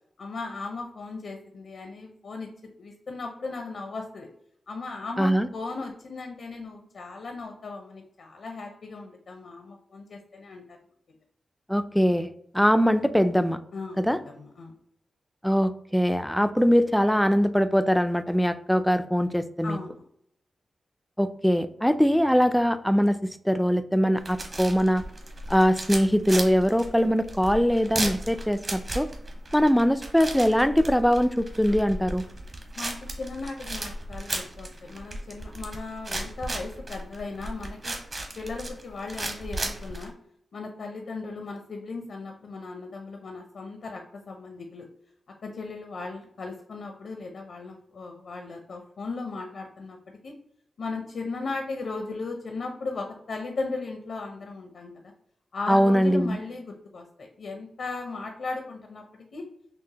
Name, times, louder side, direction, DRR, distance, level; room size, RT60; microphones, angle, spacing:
voice 1, 0.2-2.5 2.8-4.3 4.7-10.8 13.7-14.8 19.6-20.0 32.8-38.0 38.4-40.1 40.5-44.9 45.4-50.0 50.2-50.3 50.8-55.1 55.5-59.5, left 3 dB, 75° left, 3 dB, 0.6 m, -37 dB
voice 2, 5.2-5.5 11.7-13.6 14.0-14.2 15.4-19.8 21.2-25.0 25.5-29.1 29.5-32.2 55.7-56.4, equal, 5° left, 10 dB, 0.3 m, -22 dB
sound 1, 24.2-40.1, right 1 dB, 40° right, 1.0 m, -36 dB
6.0 x 2.1 x 2.8 m, 0.71 s
cardioid pair, 85°, 0 cm